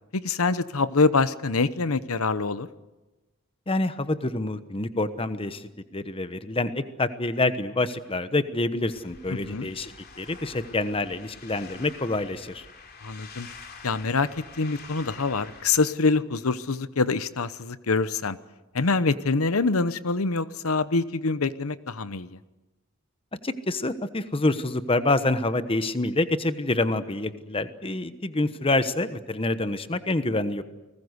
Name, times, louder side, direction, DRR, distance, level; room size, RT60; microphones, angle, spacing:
voice 1, 0.1-2.7 9.3-9.7 13.0-13.5 13.8-14.3 14.6-18.4 18.7-22.4, left 4 dB, 85° left, 14 dB, 1.0 m, -25 dB
voice 2, 3.7-9.9 10.2-12.6 23.4-30.6, left 2 dB, 25° left, 12 dB, 1.1 m, -27 dB
sound 1, 8.8-15.9, left 5 dB, 50° left, 3.4 m, -47 dB
30.0 x 20.0 x 8.1 m, 1.1 s
head